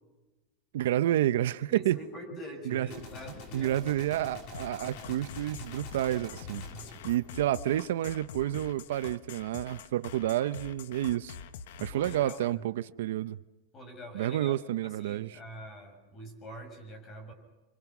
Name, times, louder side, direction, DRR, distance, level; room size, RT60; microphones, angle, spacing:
voice 1, 0.7-2.0 2.7-2.9 3.5-6.6 7.0-11.4 11.8-13.4 14.1-15.4, right 13 dB, 70° right, 13 dB, 0.8 m, -29 dB
voice 2, 1.7-4.0 6.6-6.9 11.9-12.6 13.7-14.5 14.8-17.3, equal, 25° left, 6 dB, 6.7 m, -45 dB
Gunshot gunfire, 2.9-8.1, left 4 dB, 40° left, 4.1 m, -47 dB
sound 1, 4.5-12.5, left 7 dB, 70° left, 1.3 m, -45 dB
28.5 x 25.5 x 6.1 m, 1.1 s
supercardioid pair, 160°, 0 cm